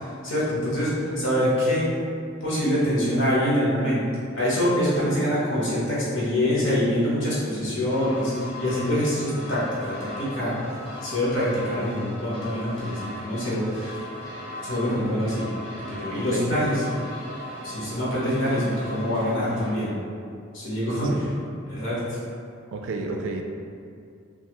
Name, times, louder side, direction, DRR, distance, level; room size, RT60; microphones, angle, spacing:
voice 1, 0.0-1.9 2.4-4.0 4.3-10.5 11.0-12.9 13.2-14.0 14.6-15.4 15.7-16.8 17.6-19.9 20.5-21.1 21.7-22.0, equal, 70° left, -8 dB, 1.0 m, -25 dB
sound 1, 7.9-19.7, left 1 dB, 30° left, 0.7 m, -39 dB
voice 2, 16.2-16.6 21.0-21.3 22.7-23.4, right 3 dB, 70° right, 3 dB, 0.3 m, -31 dB
2.6 x 2.4 x 2.9 m, 2.4 s
head